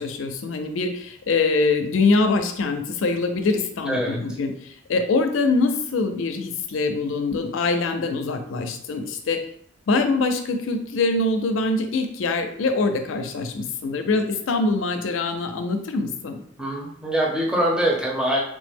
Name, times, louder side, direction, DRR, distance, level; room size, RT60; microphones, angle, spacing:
voice 1, 0.0-4.5 4.9-9.4 9.9-16.4, left 3 dB, 70° left, 6 dB, 0.4 m, -23 dB
voice 2, 3.9-4.2 16.6-18.4, right 1 dB, 5° right, -2 dB, 0.6 m, -23 dB
3.1 x 2.0 x 3.4 m, 0.64 s
head